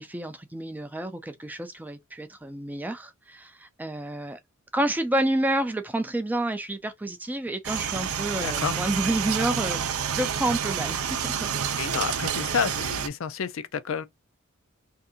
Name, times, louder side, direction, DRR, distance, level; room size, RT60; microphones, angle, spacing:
voice 1, 0.0-4.4 4.7-11.5 11.8-11.9, right 1 dB, 10° right, 0.3 m, -29 dB
sound 1, 7.6-13.1, right 8 dB, 80° right, 0.5 m, -29 dB
voice 2, 8.3-8.7 11.8-14.1, left 6 dB, 65° left, 0.4 m, -30 dB
2.7 x 2.5 x 3.5 m
head